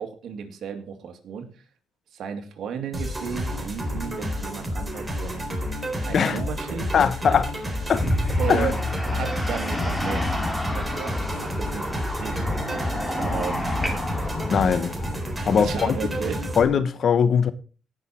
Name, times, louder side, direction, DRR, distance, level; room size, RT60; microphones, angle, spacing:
voice 1, 0.0-1.5 2.1-5.4 6.0-6.9 8.4-8.8 9.1-10.3 10.7-11.9 12.2-13.6 14.2-14.3 15.6-16.4, right 7 dB, 70° right, 2.4 m, -34 dB
sound 1, 2.9-16.6, equal, 15° right, 3.9 m, -30 dB
voice 2, 6.1-6.5 6.9-7.5 7.9-8.1 8.5-8.7 14.4-14.9 15.5-15.9 16.6-17.5, left 7 dB, 55° left, 1.1 m, -21 dB
sound 2, 7.9-15.2, left 1 dB, 5° left, 3.0 m, -29 dB
18.0 x 6.5 x 4.4 m
cardioid pair, 80°, 0 cm